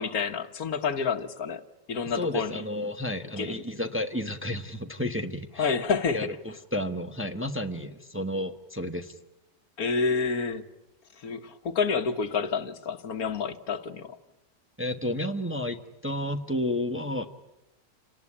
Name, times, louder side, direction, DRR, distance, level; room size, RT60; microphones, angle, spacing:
voice 1, 0.0-2.6 3.4-3.6 5.6-6.3 9.8-10.7 11.2-14.2, left 5 dB, 70° left, 1.6 m, -29 dB
voice 2, 2.1-5.7 6.1-6.3 6.7-9.1 14.8-17.3, left 1 dB, 10° right, 1.1 m, -31 dB
28.0 x 19.0 x 9.9 m
omnidirectional pair, 1.6 m